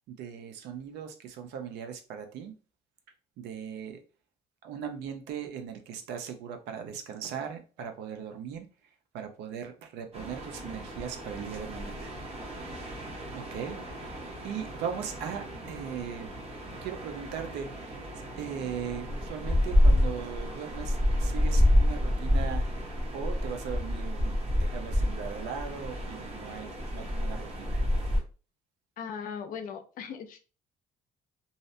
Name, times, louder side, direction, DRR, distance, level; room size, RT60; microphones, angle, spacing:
voice 1, 0.1-2.6 3.4-4.0 4.6-8.7 9.1-12.1 13.3-16.3 16.8-18.0 18.4-22.7 23.1-27.8, right 7 dB, 85° right, 0.5 m, -39 dB
sound 1, 10.1-28.2, left 1 dB, 35° right, 0.9 m, -29 dB
voice 2, 29.0-30.4, left 7 dB, 55° left, 0.5 m, -38 dB
2.7 x 2.0 x 2.6 m
cardioid pair, 110°, 17 cm